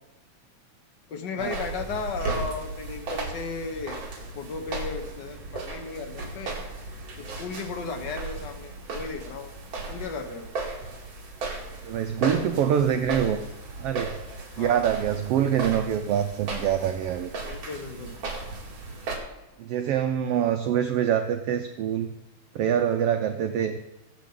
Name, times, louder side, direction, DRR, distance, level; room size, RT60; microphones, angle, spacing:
voice 1, 1.1-4.0 4.3-6.6 7.1-9.5 9.9-10.5 14.6-15.0 17.4-18.1, left 4 dB, 60° left, 5 dB, 1.1 m, -35 dB
sound 1, 1.4-19.2, right 3 dB, 55° right, 3.1 m, -36 dB
voice 2, 11.8-13.4 13.8-14.2 14.6-17.3 19.6-22.1 22.5-23.8, right 9 dB, 85° right, 7 dB, 1.3 m, -25 dB
20.0 x 7.6 x 3.8 m, 1.0 s
omnidirectional pair, 3.4 m